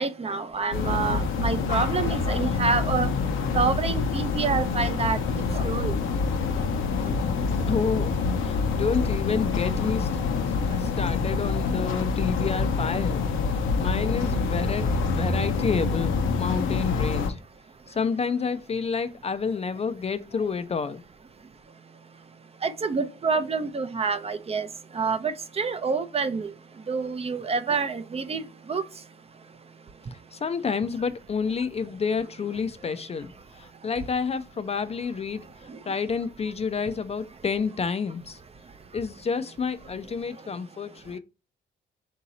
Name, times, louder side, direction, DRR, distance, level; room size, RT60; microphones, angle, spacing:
voice 1, 0.0-3.1 3.5-5.2 5.5-5.9 22.6-24.7 24.9-26.5 26.9-28.4 28.7-28.8, right 4 dB, 30° right, 0.5 m, -27 dB
sound 1, 0.7-17.3, left 4 dB, 85° left, 0.8 m, -26 dB
voice 2, 7.5-10.1 10.8-17.4 17.9-21.0 30.1-35.5 35.8-38.4 38.9-41.2, left 5 dB, 30° left, 0.4 m, -29 dB
3.7 x 2.8 x 4.0 m
cardioid pair, 90°, 20 cm